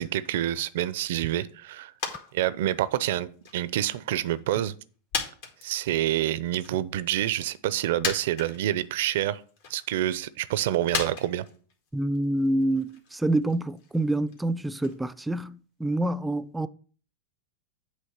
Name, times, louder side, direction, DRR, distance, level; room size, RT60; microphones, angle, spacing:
voice 1, 0.0-1.9 2.3-4.7 5.6-9.4 9.7-11.5, right 13 dB, 70° right, 0.5 m, -27 dB
sound 1, 2.0-2.3 2.6-3.8 4.3-4.4 5.1-6.2 6.6-6.7 7.6-7.7 8.0-8.9 9.3-9.9 10.9-15.0 15.3-15.4, left 5 dB, 70° left, 1.8 m, -35 dB
voice 2, 11.9-16.7, right 1 dB, 5° right, 0.4 m, -27 dB
8.1 x 3.2 x 5.8 m
hypercardioid pair, 105°, 0 cm